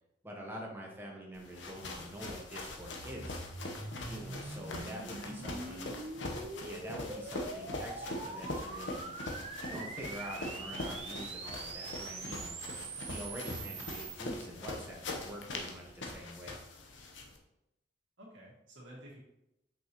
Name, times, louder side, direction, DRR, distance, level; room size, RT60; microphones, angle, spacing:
voice 1, 0.2-3.5 4.1-5.9 6.6-9.2 9.6-12.6 13.0-16.6, right 1 dB, 10° right, -2 dB, 1.1 m, -45 dB
sound 1, 1.3-17.4, left 2 dB, 85° left, 1.0 m, -42 dB
sound 2, 2.8-14.2, right 3 dB, 35° right, 0.6 m, -44 dB
voice 2, 4.7-6.0 18.2-19.2, right 1 dB, 85° right, -3 dB, 2.2 m, -52 dB
6.3 x 5.4 x 3.0 m, 0.87 s
head